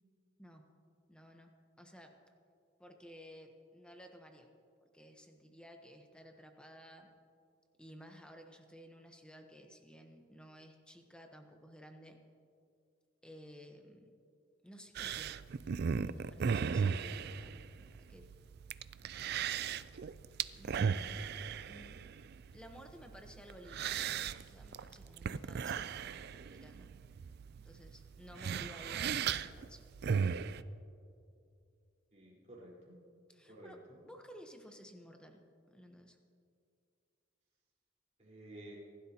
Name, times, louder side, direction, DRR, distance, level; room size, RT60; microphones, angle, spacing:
voice 1, 1.1-1.5 1.8-2.1 2.8-4.5 4.9-7.1 7.8-12.2 13.2-14.1 14.6-15.3 15.9-17.6 17.9-18.3 20.6-21.4 21.7-22.0 22.5-24.0 24.4-26.0 26.5-26.9 27.6-29.8 33.3-35.4 35.7-36.2, equal, 5° left, 4 dB, 1.0 m, -55 dB
sound 1, 14.9-30.6, right 6 dB, 55° right, 0.4 m, -37 dB
voice 2, 32.1-33.0 33.5-34.0 38.2-38.8, right 1 dB, 35° right, -6 dB, 4.3 m, -52 dB
25.5 x 12.0 x 2.9 m, 2.4 s
head